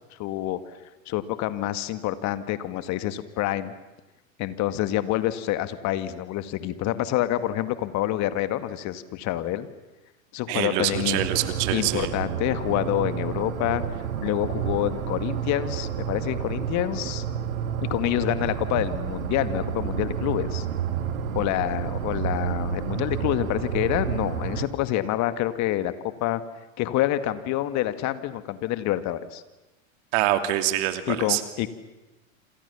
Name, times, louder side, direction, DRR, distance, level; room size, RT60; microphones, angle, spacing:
voice 1, 0.1-0.6 1.1-3.7 4.4-9.7 10.3-11.3 11.7-13.8 14.2-17.2 17.9-20.7 21.3-26.4 26.8-29.4 31.1-31.7, left 13 dB, 45° left, 12 dB, 2.1 m, -27 dB
voice 2, 10.5-12.1 30.1-31.4, right 14 dB, 55° right, 9 dB, 2.9 m, -25 dB
sound 1, 10.9-24.6, right 8 dB, 70° right, 3.1 m, -30 dB
28.0 x 28.0 x 7.2 m, 1.1 s
hypercardioid pair, 105°, 41 cm